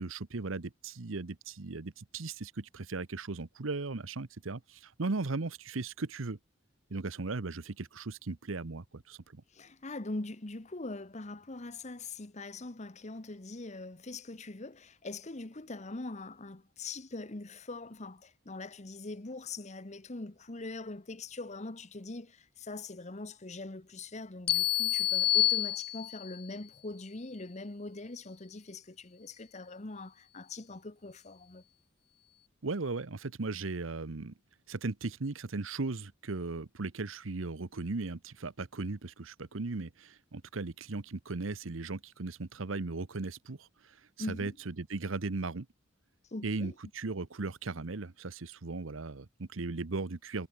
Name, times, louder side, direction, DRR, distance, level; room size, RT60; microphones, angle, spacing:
voice 1, 0.0-6.4 6.9-9.4 32.6-34.3 34.7-44.0 44.3-45.7 46.4-50.5, right 3 dB, 80° right, 1.0 m, -37 dB
voice 2, 9.5-31.6 44.2-44.6 46.3-46.7, left 2 dB, 35° left, 1.2 m, -42 dB
sound 1, 24.5-26.4, left 13 dB, 50° left, 0.8 m, -28 dB
head